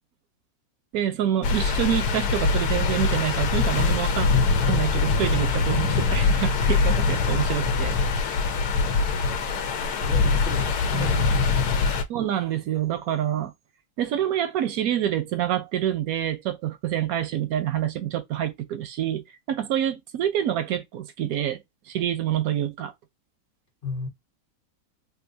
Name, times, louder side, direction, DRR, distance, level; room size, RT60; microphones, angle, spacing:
voice 1, 0.9-4.3 4.7-8.0 10.9-11.2 12.1-13.5 14.0-22.9, right 11 dB, 75° right, 1.0 m, -27 dB
sound 1, 1.4-12.0, left 4 dB, 90° left, 1.2 m, -23 dB
voice 2, 10.0-11.3 23.8-24.1, left 5 dB, 40° left, 1.1 m, -33 dB
3.7 x 2.6 x 2.6 m
omnidirectional pair, 1.6 m